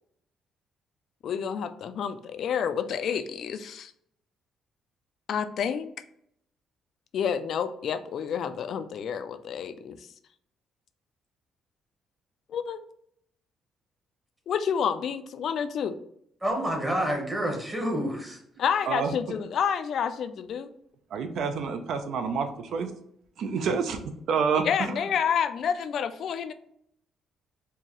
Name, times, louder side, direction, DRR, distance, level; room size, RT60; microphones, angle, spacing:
voice 1, 1.2-3.9 5.3-5.9 7.1-10.0 12.5-12.8 14.5-16.0 18.6-20.7 24.7-26.5, left 7 dB, 55° left, 11 dB, 0.3 m, -29 dB
voice 2, 16.4-18.4, equal, 15° right, 1 dB, 0.9 m, -28 dB
voice 3, 21.1-22.9 23.4-24.0 24.3-25.0, right 5 dB, 65° right, 7 dB, 0.6 m, -28 dB
4.5 x 2.7 x 3.0 m, 0.71 s
cardioid pair, 145°, 0 cm